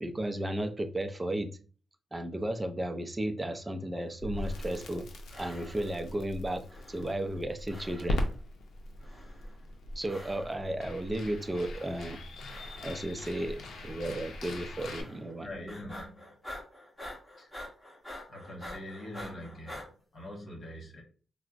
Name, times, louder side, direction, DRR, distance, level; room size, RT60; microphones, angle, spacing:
voice 1, 0.0-1.5 2.1-5.1 5.4-8.2 10.0-12.2 12.8-13.6 13.8-15.5, right 1 dB, 20° right, 8 dB, 0.4 m, -34 dB
Crackle, 4.2-15.0, left 1 dB, 90° left, 0.5 m, -39 dB
sound 1, 4.3-5.0 5.3-6.1 6.7-7.4 7.7-8.4 9.0-9.6 10.0-10.7 11.3-11.9 12.4-13.2 13.6-14.1 14.8-15.4 15.7-19.9, left 1 dB, 10° left, 1.2 m, -48 dB
voice 2, 12.8-13.4 15.4-16.4 17.4-17.5 18.3-21.0, left 1 dB, 55° left, 0 dB, 1.3 m, -44 dB
4.4 x 2.0 x 2.4 m, 0.38 s
cardioid pair, 95°, 0 cm